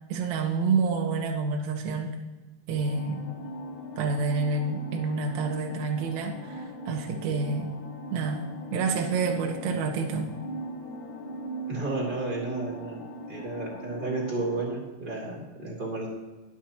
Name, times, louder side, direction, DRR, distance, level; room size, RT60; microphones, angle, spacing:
voice 1, 0.1-2.1 2.7-3.3 4.0-7.7 8.1-8.4 8.7-10.3, right 4 dB, 60° right, 2 dB, 1.9 m, -28 dB
sound 1, 2.8-14.7, equal, 70° left, 4.2 m, -40 dB
voice 2, 11.7-13.0 13.3-16.1, right 2 dB, 25° right, -4 dB, 3.0 m, -32 dB
22.5 x 8.4 x 3.0 m, 1.2 s
omnidirectional pair, 5.4 m